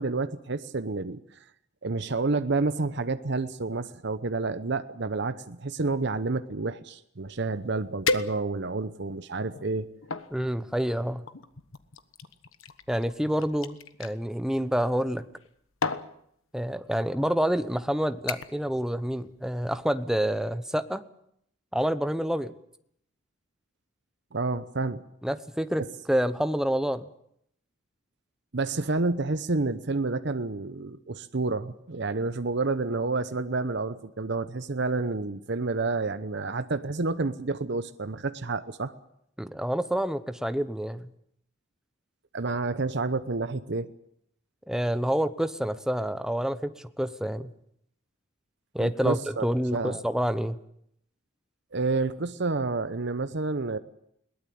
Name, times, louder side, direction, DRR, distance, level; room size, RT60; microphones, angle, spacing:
voice 1, 0.0-1.4 1.8-9.9 24.3-25.0 28.5-38.9 42.3-43.9 48.8-49.5 49.7-50.0 51.7-53.8, right 3 dB, 60° right, 11 dB, 0.9 m, -29 dB
sound 1, 7.4-7.5 8.0-8.8 9.4-10.3 11.3-14.1 15.2-15.5 15.8-16.1 17.0-17.2 17.6-17.9 18.3-18.7 19.0-19.4 19.7-19.8, left 4 dB, 80° left, 1.3 m, -34 dB
voice 2, 10.3-11.3 12.9-15.3 16.5-21.0 21.7-22.5 25.2-27.0 39.4-41.1 44.7-47.5 48.7-50.6, equal, 5° right, 12 dB, 0.9 m, -28 dB
21.5 x 18.5 x 8.6 m, 0.72 s
head